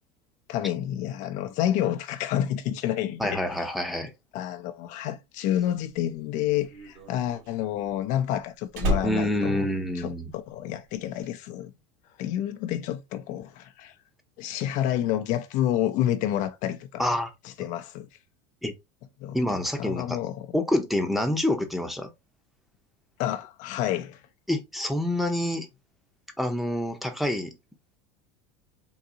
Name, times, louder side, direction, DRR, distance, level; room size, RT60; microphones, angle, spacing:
voice 1, 0.5-3.4 4.3-9.7 9.9-11.7 12.2-13.9 14.4-17.1 17.4-18.1 19.2-19.4 19.8-20.6 23.2-24.2, left 11 dB, 55° left, 0.5 m, -29 dB
voice 2, 3.2-4.1 9.0-10.3 17.0-17.3 18.6-18.7 19.3-20.2 20.5-22.1 24.5-25.7 26.4-27.6, left 1 dB, ahead, 0.7 m, -27 dB
Slam, 5.9-10.6 10.8-11.3, left 1 dB, 60° right, 1.6 m, -32 dB
3.8 x 2.6 x 2.7 m
supercardioid pair, 115°, 15 cm